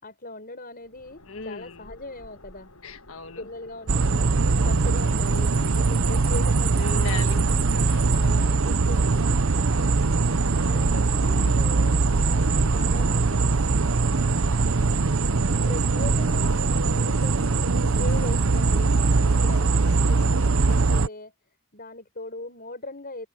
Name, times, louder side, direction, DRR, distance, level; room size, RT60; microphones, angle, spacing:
voice 1, 0.0-2.7 3.4-4.3 4.6-7.5 8.1-9.4 10.1-13.5 14.0-14.5 15.7-21.3 21.7-23.3, left 2 dB, 40° left, 6.5 m, -40 dB
sound 1, 0.8-20.6, left 1 dB, 80° left, 6.7 m, -49 dB
voice 2, 1.3-1.8 2.8-3.5 6.8-7.3 7.7-8.0 9.7-10.2 14.0-14.3, left 5 dB, 65° left, 1.7 m, -38 dB
sound 2, 3.9-21.1, right 3 dB, 65° right, 0.8 m, -21 dB
head